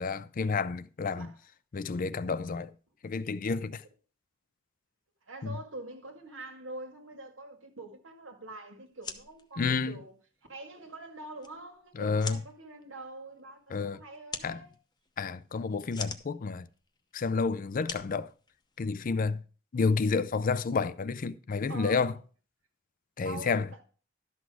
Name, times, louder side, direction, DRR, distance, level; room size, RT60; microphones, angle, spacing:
voice 1, 0.0-1.3 1.7-2.7 3.0-3.8 5.4-5.6 9.6-10.0 12.0-12.4 13.7-14.0 14.4-14.6 15.2-16.6 17.1-18.3 18.8-19.4 19.7-22.1 23.2-23.7, left 4 dB, 45° left, 0.4 m, -30 dB
voice 2, 1.1-1.4 5.3-10.1 10.5-14.7 21.7-22.2 23.2-23.8, right 2 dB, 75° right, 1.9 m, -45 dB
sound 1, 8.9-19.1, left 5 dB, 20° left, 0.8 m, -46 dB
12.0 x 6.2 x 4.8 m
head